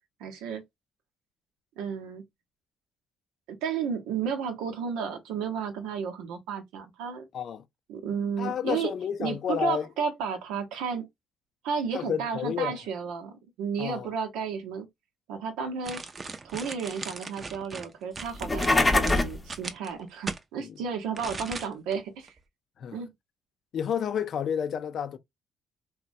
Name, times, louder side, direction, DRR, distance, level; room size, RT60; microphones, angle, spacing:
voice 1, 0.2-0.6 1.8-2.2 3.5-7.3 7.9-8.9 9.2-11.1 11.6-14.9 15.3-16.0 16.4-22.3 22.9-23.1, right 6 dB, 85° right, 0.7 m, -33 dB
voice 2, 7.3-7.6 8.4-9.9 11.9-12.8 13.8-14.1 20.6-20.7 22.8-23.0 23.7-25.2, left 8 dB, 65° left, 0.4 m, -30 dB
sound 1, 15.8-20.4 21.1-21.9 22.3-22.4, right 4 dB, 35° right, 0.5 m, -38 dB
sound 2, 18.3-19.4, left 2 dB, 20° left, 0.6 m, -23 dB
2.9 x 2.1 x 2.5 m
supercardioid pair, 65°, 0 cm